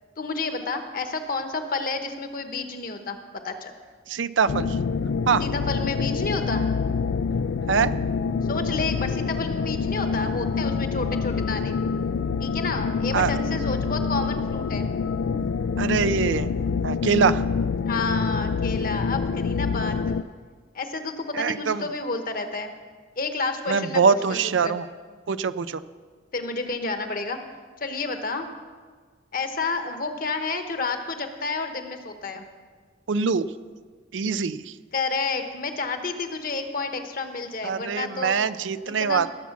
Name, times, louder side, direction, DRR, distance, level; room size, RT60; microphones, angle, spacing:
voice 1, 0.2-3.2 3.4-3.7 5.4-6.7 8.5-11.7 12.4-14.9 17.8-20.2 20.7-22.7 23.2-24.8 26.3-27.4 27.8-28.5 29.3-32.5 34.9-38.4 39.0-39.3, left 3 dB, 50° left, 7 dB, 1.1 m, -30 dB
voice 2, 4.1-4.7 5.3-5.4 7.7-7.9 13.1-13.3 15.8-16.5 16.8-17.4 21.3-21.9 23.7-24.9 25.3-25.8 33.1-33.5 34.1-34.7 37.6-39.3, right 5 dB, 75° right, 14 dB, 0.5 m, -23 dB
sound 1, 4.5-20.2, left 5 dB, 85° left, 0.4 m, -26 dB
18.5 x 7.3 x 6.0 m, 1.5 s
head